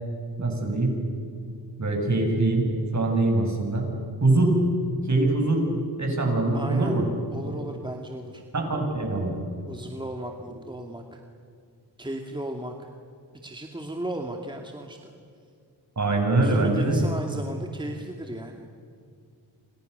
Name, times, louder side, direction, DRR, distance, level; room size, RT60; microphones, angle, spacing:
voice 1, 0.4-0.9 1.8-3.9 4.2-4.6 5.1-5.6 6.0-7.0 7.4-7.5 8.5-9.4 16.0-17.0, right 2 dB, 40° right, 2 dB, 7.6 m, -23 dB
voice 2, 6.5-7.0 7.3-8.4 9.7-11.2 12.0-12.9 13.3-15.1 16.4-18.7, right 1 dB, 10° right, 2 dB, 2.4 m, -35 dB
29.0 x 27.0 x 6.9 m, 2.4 s
cardioid pair, 80°, 44 cm